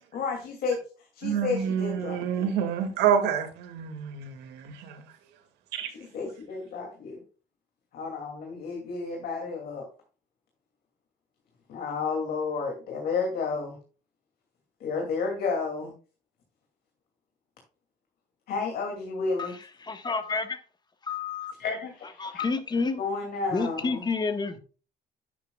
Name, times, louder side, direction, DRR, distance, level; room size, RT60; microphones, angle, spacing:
voice 1, 0.1-0.8 1.1-2.5 5.9-7.2 7.9-9.9 11.7-13.8 14.8-15.9 18.5-19.6 21.6-22.5 23.0-24.0, left 4 dB, 65° left, 2.6 m, -31 dB
voice 2, 1.2-5.1 5.7-5.9, right 8 dB, 90° right, 2.2 m, -28 dB
voice 3, 19.8-20.6 21.0-21.5 22.2-23.0 23.5-24.6, left 4 dB, 25° left, 1.3 m, -29 dB
10.5 x 8.3 x 2.3 m
cardioid pair, 110°, 17 cm